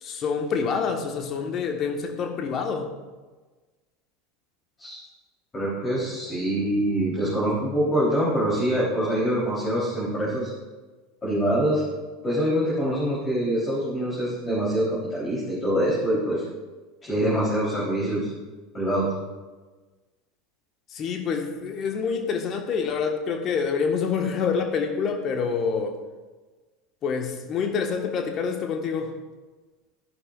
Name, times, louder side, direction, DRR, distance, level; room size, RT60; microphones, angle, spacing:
voice 1, 0.0-2.9 20.9-26.0 27.0-29.1, left 5 dB, 40° left, 4 dB, 1.5 m, -27 dB
voice 2, 5.5-10.5 11.2-11.8 12.2-16.5 17.0-18.3 18.7-19.1, equal, 20° left, -7 dB, 3.8 m, -25 dB
13.5 x 11.0 x 2.5 m, 1.3 s
figure-of-eight pair, 80°, 0 cm